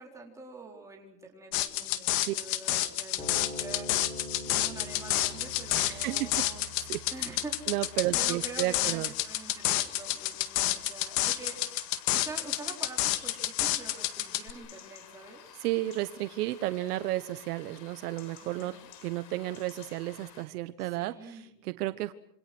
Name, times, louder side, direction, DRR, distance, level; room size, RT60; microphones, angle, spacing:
voice 1, 0.0-3.9 4.5-6.7 7.1-7.7 8.1-11.6 12.1-15.4 18.4-18.9 20.8-21.5, right 3 dB, 5° right, 0 dB, 4.3 m, -46 dB
sound 1, 1.5-14.5, left 14 dB, 50° left, 1.9 m, -30 dB
sound 2, 3.2-9.8, equal, 10° left, 3.8 m, -45 dB
sound 3, 4.9-20.4, left 9 dB, 85° left, 4.6 m, -52 dB
voice 2, 5.7-6.4 6.9-7.0 7.7-9.1 15.6-18.8 19.0-22.1, right 16 dB, 70° right, 12 dB, 1.3 m, -32 dB
27.0 x 26.0 x 6.2 m, 0.67 s
supercardioid pair, 160°, 48 cm